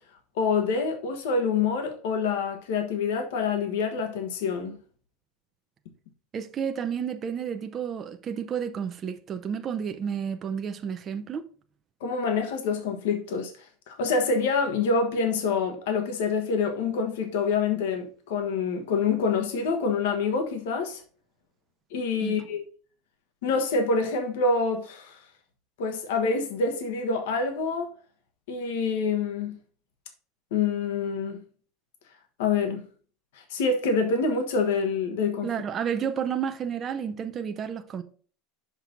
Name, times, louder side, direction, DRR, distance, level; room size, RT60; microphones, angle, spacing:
voice 1, 0.4-4.8 12.0-13.5 13.9-21.0 21.9-22.6 23.4-25.2 25.8-27.9 28.5-29.6 30.5-31.4 32.4-32.8 33.5-35.5, left 4 dB, 80° left, 1.3 m, -26 dB
voice 2, 6.3-11.4 22.2-22.5 35.4-38.0, right 7 dB, 20° right, 0.5 m, -31 dB
6.0 x 5.9 x 3.8 m
supercardioid pair, 175°, 0 cm